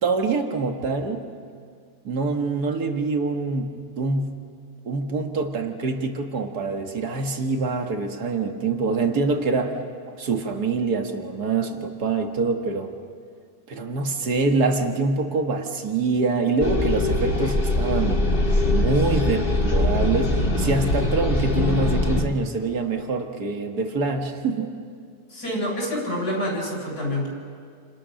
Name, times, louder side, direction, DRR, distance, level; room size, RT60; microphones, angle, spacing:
voice 1, 0.0-1.2 2.0-4.4 4.8-9.8 10.2-12.9 13.7-18.2 18.7-24.7, right 3 dB, 85° right, 4 dB, 2.3 m, -25 dB
sound 1, 16.6-22.3, left 1 dB, 35° left, 2.0 m, -22 dB
voice 2, 25.3-27.3, left 1 dB, 85° left, -2 dB, 7.5 m, -27 dB
30.0 x 27.0 x 6.5 m, 2.1 s
omnidirectional pair, 1.6 m